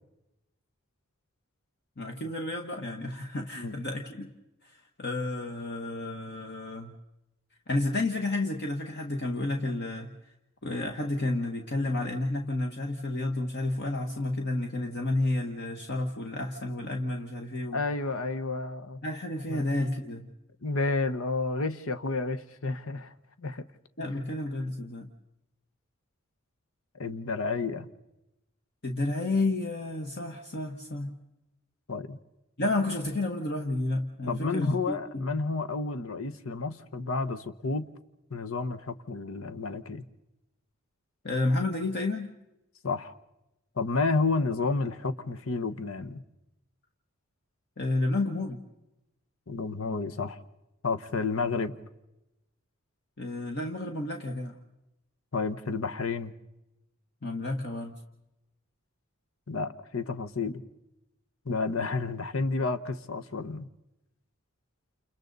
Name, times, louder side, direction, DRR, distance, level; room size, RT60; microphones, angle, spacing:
voice 1, 2.0-4.3 4.6-4.7 5.0-7.0 7.7-10.1 10.6-17.8 19.0-20.3 24.0-25.1 28.8-31.1 32.6-35.4 41.2-42.3 47.8-48.6 53.2-54.6 57.2-57.9, left 2 dB, 55° left, 3 dB, 1.4 m, -31 dB
voice 2, 17.7-19.0 19.5-19.7 20.6-23.6 26.9-27.9 31.9-32.2 34.3-37.9 38.3-40.1 42.8-43.1 43.8-46.2 49.5-50.4 50.8-51.7 55.3-56.3 59.5-60.6 61.4-63.7, left 3 dB, 85° left, 10 dB, 1.0 m, -31 dB
29.0 x 28.5 x 4.0 m, 0.93 s
head